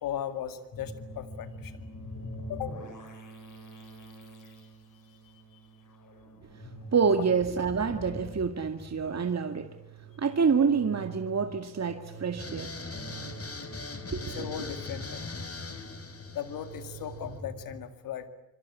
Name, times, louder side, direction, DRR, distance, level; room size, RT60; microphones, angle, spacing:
voice 1, 0.0-1.8 2.5-2.8 4.4-4.5 14.3-15.3 16.3-18.3, left 10 dB, 90° left, 2.2 m, -37 dB
sound 1, 0.7-17.7, right 1 dB, 65° left, 7.9 m, -45 dB
voice 2, 6.9-9.7 10.2-12.8 14.1-14.5, right 5 dB, 50° right, 2.1 m, -27 dB
sound 2, 12.4-17.3, left 3 dB, 45° left, 4.5 m, -40 dB
26.0 x 26.0 x 8.5 m
supercardioid pair, 40°, 33 cm